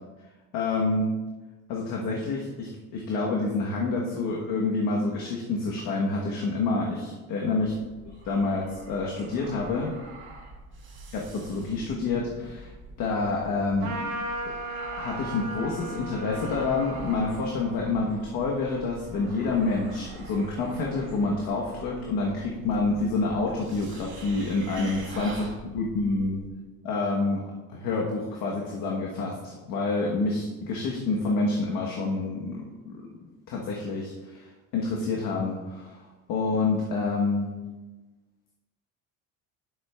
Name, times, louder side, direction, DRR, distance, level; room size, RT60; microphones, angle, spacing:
voice 1, 0.5-1.1 1.7-7.7 8.3-9.9 11.1-12.7 13.0-14.0 14.4-14.5 14.9-25.5 25.7-26.4 26.8-27.4 27.7-33.0 33.5-34.5 34.7-36.0 36.3-37.5, left 3 dB, 70° left, -2 dB, 1.3 m, -28 dB
sound 1, 7.6-26.5, right 3 dB, 35° right, 2.1 m, -45 dB
Trumpet, 13.8-19.6, right 1 dB, 55° right, 1.5 m, -37 dB
10.0 x 7.4 x 2.4 m, 1.2 s
cardioid pair, 130°, 35 cm